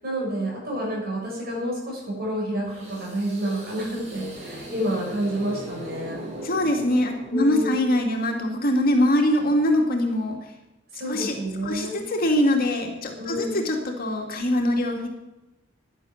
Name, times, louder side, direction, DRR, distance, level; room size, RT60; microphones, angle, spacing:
voice 1, 0.0-6.2 7.3-7.8 10.9-12.0 13.2-13.7, equal, 55° right, -2 dB, 6.7 m, -29 dB
sound 1, 2.7-7.7, right 1 dB, 35° right, 4.5 m, -39 dB
voice 2, 6.4-10.4 11.1-11.4 11.6-15.1, left 1 dB, 50° left, 2 dB, 2.3 m, -23 dB
11.0 x 11.0 x 7.2 m, 0.97 s
head